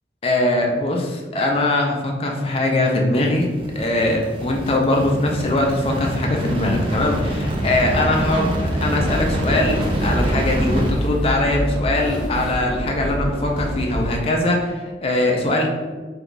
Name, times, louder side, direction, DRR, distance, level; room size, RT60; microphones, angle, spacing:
voice 1, 0.2-3.5 3.8-15.7, left 2 dB, 35° left, 1 dB, 0.5 m, -21 dB
sound 1, 3.3-10.9, right 1 dB, 30° right, 0.4 m, -25 dB
sound 2, 8.4-14.2, equal, 5° right, 0.8 m, -27 dB
2.8 x 2.3 x 3.8 m, 1.3 s
head